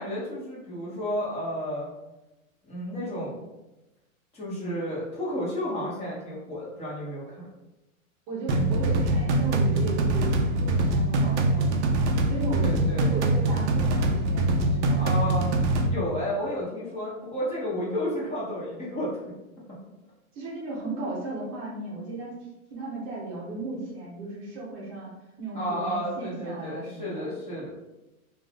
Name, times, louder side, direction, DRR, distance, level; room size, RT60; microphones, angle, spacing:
voice 1, 0.0-1.9 2.6-3.4 4.3-7.4 12.6-13.1 15.0-15.5 15.8-19.1 25.5-27.7, equal, 15° left, -6 dB, 1.0 m, -32 dB
voice 2, 4.5-4.8 8.3-11.9 12.3-15.1 20.3-22.4 22.7-25.1 25.4-27.3, right 2 dB, 30° right, -4 dB, 0.8 m, -36 dB
sound 1, 8.5-15.9, right 2 dB, 55° right, 0.5 m, -23 dB
2.6 x 2.5 x 3.4 m, 1.0 s
hypercardioid pair, 130°, 41 cm